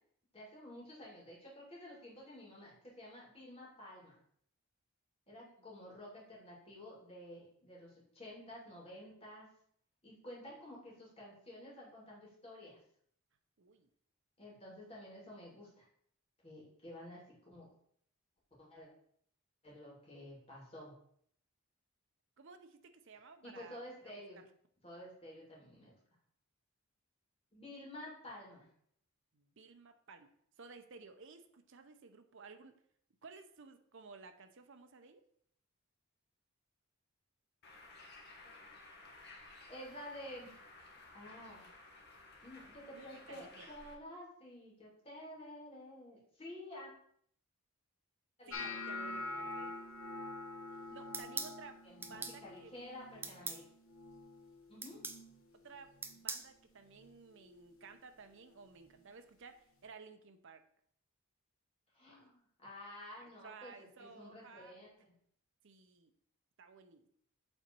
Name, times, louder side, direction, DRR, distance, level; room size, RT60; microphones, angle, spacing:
voice 1, 0.3-4.2 5.3-9.5 10.0-12.8 14.4-15.8 16.4-17.7 18.6-18.9 19.6-20.9 23.4-24.4 24.8-26.0 27.5-28.7 39.7-40.6 41.1-41.7 42.4-46.9 48.4-48.8 51.8-53.6 54.7-55.0 61.9-63.7 64.0-65.1, left 1 dB, 25° left, -5 dB, 2.6 m, -51 dB
voice 2, 13.6-13.9 22.4-23.8 24.0-24.5 29.3-30.3 30.6-32.8 33.2-35.2 42.9-43.7 48.5-49.8 50.9-51.8 52.1-52.7 55.5-60.7 62.1-62.3 63.2-64.8 65.6-66.1 66.6-67.1, right 4 dB, 60° right, 8 dB, 0.7 m, -55 dB
Bird, 37.6-43.9, left 2 dB, 50° left, 1.3 m, -56 dB
sound 1, 48.5-54.6 54.9-55.4 55.7-56.3 56.9-57.1 58.9-59.0, left 2 dB, 70° left, 1.3 m, -46 dB
sound 2, 51.1-51.6 52.0-52.4 53.2-53.6 54.8-55.2 56.0-56.5, right 4 dB, 10° right, 0.4 m, -41 dB
7.6 x 4.0 x 4.5 m, 0.65 s
head